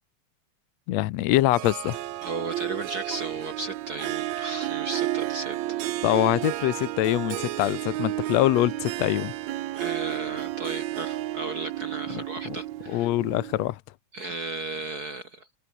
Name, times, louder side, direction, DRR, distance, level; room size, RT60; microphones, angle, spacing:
voice 1, 0.9-2.0 6.0-9.3 12.5-12.6 12.9-13.8, left 16 dB, 70° left, 1.8 m, -24 dB
Harp, 1.5-13.7, right 15 dB, 70° right, 2.0 m, -32 dB
voice 2, 2.2-5.8 9.7-13.1 14.1-15.5, right 2 dB, 45° right, 1.3 m, -35 dB
open air
omnidirectional pair, 3.6 m